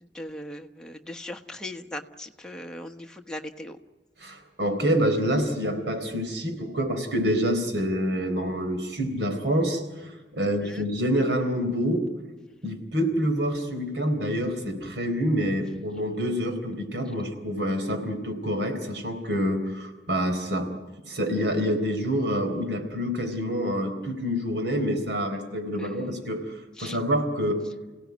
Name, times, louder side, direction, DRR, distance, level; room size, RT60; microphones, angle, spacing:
voice 1, 0.0-3.8 10.4-10.9 25.8-26.0 26.8-27.0, left 1 dB, 5° left, 3 dB, 1.2 m, -39 dB
voice 2, 4.2-12.0 12.6-20.7 21.1-26.5 26.8-27.6, equal, 85° right, 6 dB, 4.0 m, -27 dB
28.5 x 17.0 x 9.5 m, 1.3 s
head